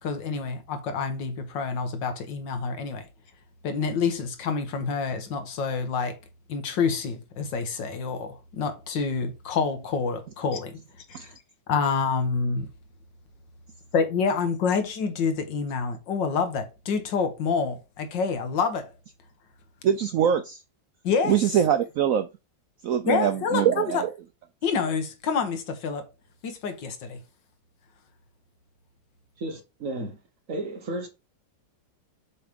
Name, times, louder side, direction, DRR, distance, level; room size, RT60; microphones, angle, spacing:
voice 1, 0.0-3.1 3.6-6.2 6.5-10.8 11.1-11.4 11.7-12.7 13.9-18.9 21.0-21.4 23.1-23.7 23.9-24.0 24.6-26.1 26.4-27.2, left 5 dB, 75° left, 1.8 m, -27 dB
voice 2, 19.8-20.6 21.2-22.3 22.8-24.1, right 9 dB, 90° right, 0.7 m, -23 dB
voice 3, 29.4-30.2 30.5-31.1, right 2 dB, 50° right, 1.3 m, -33 dB
7.1 x 3.3 x 5.1 m
omnidirectional pair, 2.0 m